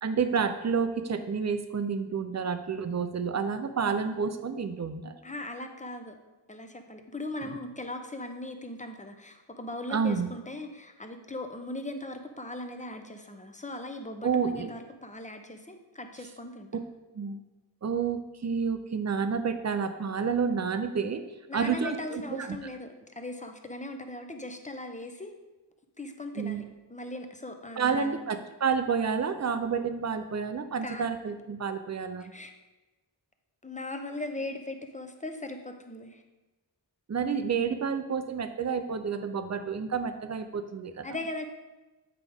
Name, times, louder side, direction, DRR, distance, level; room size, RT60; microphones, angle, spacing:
voice 1, 0.0-5.1 7.4-7.6 9.9-10.3 14.2-14.7 17.1-17.4 17.8-21.2 21.5-22.5 26.4-26.6 27.8-32.3 37.1-41.1, right 6 dB, 40° right, 9 dB, 0.5 m, -29 dB
voice 2, 5.2-6.1 6.5-16.7 21.5-25.4 26.0-26.6 26.9-28.2 30.8-31.1 32.3-32.5 33.6-36.2 41.0-41.5, left 2 dB, 15° left, 5 dB, 0.7 m, -39 dB
8.2 x 4.7 x 3.5 m, 1.1 s
wide cardioid pair, 75°, 45 cm